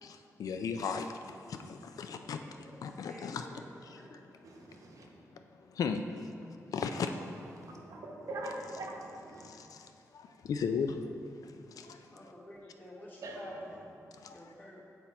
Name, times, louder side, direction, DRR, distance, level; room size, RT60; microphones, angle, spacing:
voice 1, 0.0-2.4 2.8-4.2 5.7-6.1 6.7-7.1 9.4-11.1 11.4-12.1 14.2-14.5, left 6 dB, 85° left, 7 dB, 0.3 m, -37 dB
voice 2, 2.2-2.7 3.0-4.2 5.2-5.7 6.9-7.3 12.1-13.7 14.3-14.8, equal, 35° left, -6 dB, 1.3 m, -51 dB
voice 3, 4.4-5.1 7.5-9.5 13.2-13.5, right 2 dB, 65° right, 0 dB, 0.8 m, -42 dB
7.8 x 4.3 x 4.1 m, 2.7 s
wide cardioid pair, 175°, 6 cm